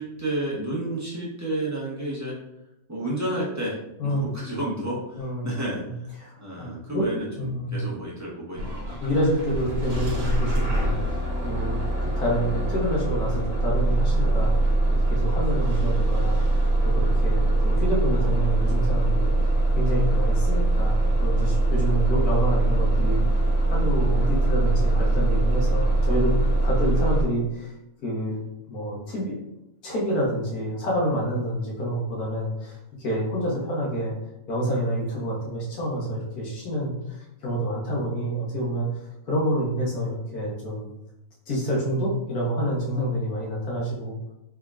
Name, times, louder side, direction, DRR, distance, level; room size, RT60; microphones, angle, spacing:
voice 1, 0.0-2.3 2.9-5.8 6.4-9.0, right 1 dB, 15° right, -7 dB, 0.7 m, -31 dB
voice 2, 5.2-5.5 6.2-6.3 6.9-7.0 7.4-7.8 9.0-14.5 14.9-19.3 19.7-26.4 26.6-27.7 28.0-28.4 28.7-29.3 29.8-34.1 34.5-38.9 39.2-40.9 41.5-44.2, equal, 85° left, -4 dB, 1.7 m, -28 dB
Bus / Engine starting, 8.6-27.2, right 2 dB, 80° right, 1.4 m, -22 dB
3.6 x 3.5 x 2.4 m, 0.87 s
omnidirectional pair, 1.5 m